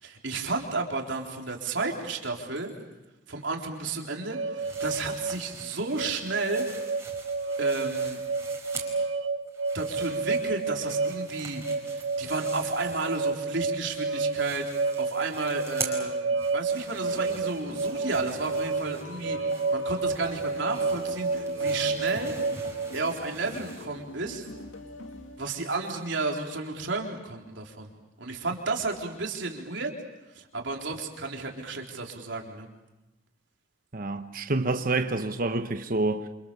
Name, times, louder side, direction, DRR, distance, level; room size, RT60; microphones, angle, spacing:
voice 1, 0.0-2.7 3.3-6.7 7.6-8.2 9.7-19.4 19.7-22.4 22.9-24.5 25.4-27.9 28.2-29.9 30.3-32.7, right 3 dB, 65° right, 3.9 m, -32 dB
sound 1, 4.3-23.1, right 3 dB, 90° right, 1.2 m, -30 dB
sound 2, 4.6-9.2 9.5-13.7 13.9-23.8, right 4 dB, 15° right, 4.9 m, -44 dB
sound 3, 16.9-25.8, left 2 dB, 85° left, 2.5 m, -44 dB
voice 2, 33.9-36.3, right 2 dB, 45° right, 1.1 m, -28 dB
29.0 x 27.0 x 6.9 m
head